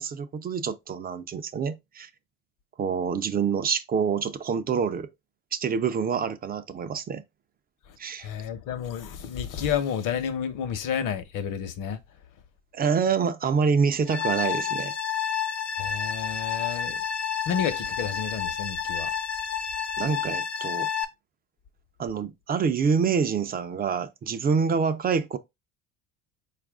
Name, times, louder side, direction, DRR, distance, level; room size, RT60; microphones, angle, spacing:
voice 1, 0.0-2.1 2.8-5.1 5.5-7.2 8.0-8.3 12.7-14.9 20.0-20.9 22.0-25.4, right 6 dB, 25° right, 0.4 m, -26 dB
voice 2, 8.2-12.0 15.8-17.0 17.5-19.1, left 8 dB, 50° left, 0.9 m, -30 dB
sound 1, 14.1-21.0, left 7 dB, 30° left, 0.6 m, -30 dB
4.5 x 2.5 x 3.4 m
supercardioid pair, 95°, 39 cm